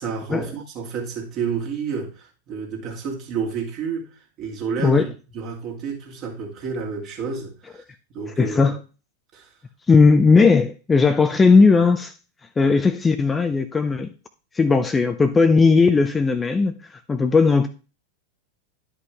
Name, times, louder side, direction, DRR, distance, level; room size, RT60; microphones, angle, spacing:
voice 1, 0.0-7.8 8.1-8.7 9.3-9.5, right 6 dB, 35° right, 2.4 m, -30 dB
voice 2, 8.4-8.8 9.9-12.1 12.6-14.1 14.5-16.8 17.1-17.7, left 4 dB, 15° left, 0.5 m, -17 dB
11.0 x 5.2 x 3.4 m
figure-of-eight pair, 90°, 0 cm